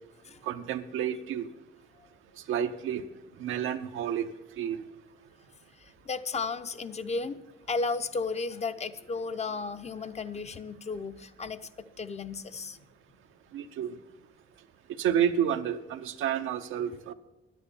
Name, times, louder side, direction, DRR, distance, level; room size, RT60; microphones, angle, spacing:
voice 1, 0.4-1.5 2.5-3.0 3.4-4.3 4.6-4.8 13.5-13.9 15.0-17.1, right 9 dB, 85° right, 8 dB, 0.7 m, -30 dB
voice 2, 5.8-7.4 7.7-11.7 12.0-12.8, left 4 dB, 35° left, 10 dB, 0.6 m, -34 dB
10.0 x 9.2 x 7.0 m, 0.98 s
cardioid pair, 90°, 20 cm